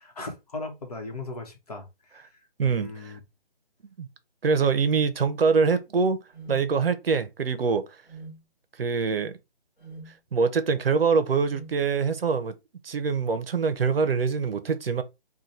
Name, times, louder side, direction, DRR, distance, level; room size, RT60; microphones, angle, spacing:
voice 1, 0.0-3.2, left 2 dB, 40° left, 1.0 m, -38 dB
voice 2, 2.6-3.1 4.0-4.1 4.4-6.2 6.5-7.8 8.8-9.3 10.3-12.5 12.8-15.0, right 5 dB, 70° right, 0.7 m, -24 dB
sound 1, 6.3-6.6 8.1-8.4 9.8-10.1 11.5-11.8, right 3 dB, 10° left, 0.9 m, -42 dB
3.2 x 2.3 x 4.1 m
hypercardioid pair, 170°, 31 cm